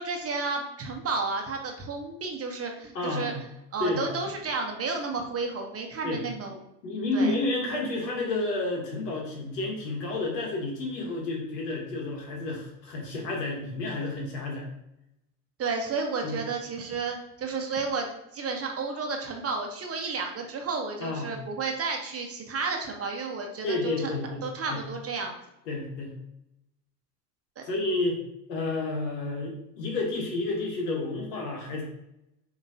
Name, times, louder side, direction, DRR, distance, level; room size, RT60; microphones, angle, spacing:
voice 1, 0.0-3.3 3.7-6.6 7.1-7.3 15.6-25.3 27.6-27.7, right 4 dB, 30° right, 3 dB, 0.9 m, -32 dB
voice 2, 2.9-3.4 3.8-4.1 6.0-6.2 6.8-14.7 16.2-16.4 21.0-21.3 23.6-24.8 25.7-26.1 27.6-28.2 28.5-31.8, left 2 dB, 80° left, 0 dB, 1.3 m, -30 dB
4.8 x 3.0 x 2.7 m, 0.84 s
hypercardioid pair, 75°, 48 cm